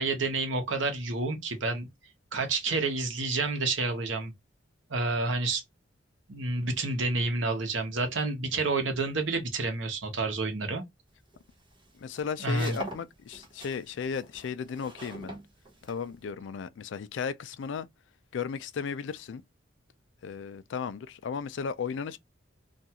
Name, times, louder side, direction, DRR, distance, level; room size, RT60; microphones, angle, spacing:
voice 1, 0.0-1.9 2.3-4.3 4.9-5.6 6.3-10.8 12.4-12.8, right 3 dB, 85° right, 0.9 m, -29 dB
sound 1, 11.2-16.3, right 1 dB, 25° right, 1.0 m, -44 dB
voice 2, 12.0-15.3 15.8-17.9 18.3-19.4 20.2-22.2, left 6 dB, 70° left, 0.4 m, -35 dB
2.5 x 2.3 x 2.8 m
head